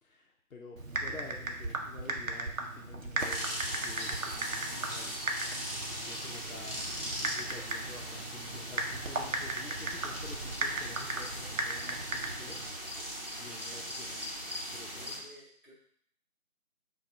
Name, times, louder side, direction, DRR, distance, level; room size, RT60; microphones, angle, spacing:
voice 1, 0.0-3.5 3.7-5.1 5.9-12.7 12.9-14.3 14.7-15.2, left 4 dB, 75° left, 0 dB, 0.6 m, -50 dB
Typing, 0.8-12.7, right 2 dB, 65° right, 0.6 m, -37 dB
sound 1, 3.2-15.2, equal, 40° right, 0.9 m, -39 dB
voice 2, 14.9-15.7, left 1 dB, 40° left, -7 dB, 0.8 m, -54 dB
4.3 x 2.3 x 2.6 m, 0.65 s
figure-of-eight pair, 175°, 43 cm